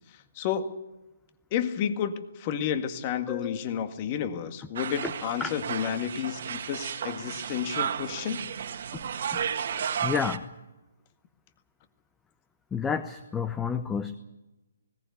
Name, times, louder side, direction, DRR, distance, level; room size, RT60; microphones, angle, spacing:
voice 1, 0.4-0.7 1.5-8.4, left 8 dB, 35° left, 9 dB, 1.8 m, -31 dB
voice 2, 3.3-3.6 5.0-5.1 5.4-5.5 8.9-9.0 9.3-9.4 9.7-10.5 12.7-14.1, left 6 dB, 10° left, 12 dB, 0.8 m, -31 dB
sound 1, 4.8-10.4, right 8 dB, 55° right, 1.7 m, -33 dB
20.0 x 18.0 x 8.3 m, 1.0 s
figure-of-eight pair, 140°, 0 cm